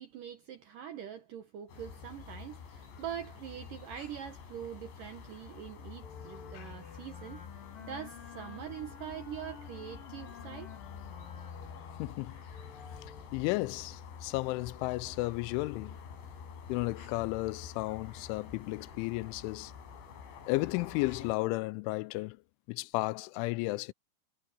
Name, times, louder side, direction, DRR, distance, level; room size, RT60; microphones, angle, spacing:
voice 1, 0.0-10.7, right 9 dB, 70° right, 2.0 m, -44 dB
sound 1, 1.7-21.3, left 6 dB, 70° left, 6.9 m, -48 dB
Wind instrument woodwind instrument, 6.0-13.3, left 8 dB, 50° left, 5.4 m, -52 dB
voice 2, 12.0-12.4 13.3-16.0 16.7-19.7 20.5-22.4 22.7-23.9, left 22 dB, 90° left, 3.0 m, -33 dB
omnidirectional pair, 5.4 m